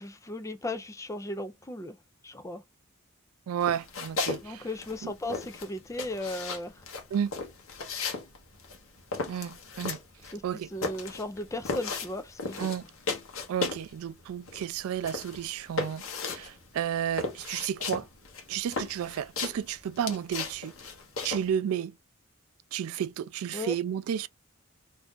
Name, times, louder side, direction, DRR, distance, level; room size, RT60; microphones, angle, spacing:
voice 1, 0.0-2.0 2.2-2.6 4.4-6.7 10.3-10.4 10.7-12.7 23.5-23.8, left 1 dB, 15° left, 0.4 m, -36 dB
voice 2, 3.5-4.7 5.0-5.1 7.1-7.3 9.3-10.0 10.4-10.7 12.6-12.8 13.5-16.0 16.3-18.1 18.5-20.7 21.2-22.0 22.7-24.3, right 9 dB, 85° right, 0.3 m, -32 dB
sound 1, 3.6-4.4 4.7-13.9 14.2-21.5, left 3 dB, 70° left, 0.9 m, -35 dB
2.6 x 2.4 x 3.4 m
head